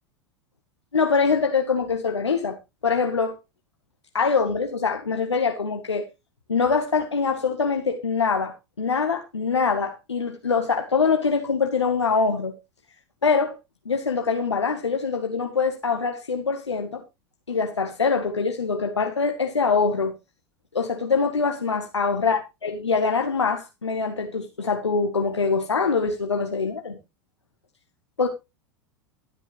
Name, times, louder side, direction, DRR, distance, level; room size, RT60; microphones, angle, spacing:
voice 1, 0.9-2.6 2.8-3.4 4.1-6.0 6.5-12.5 13.2-13.6 13.8-17.0 17.5-20.1 20.7-27.0 28.2-28.3, left 5 dB, 85° left, 1.2 m, -24 dB
12.5 x 9.1 x 3.1 m
figure-of-eight pair, 85°, 14 cm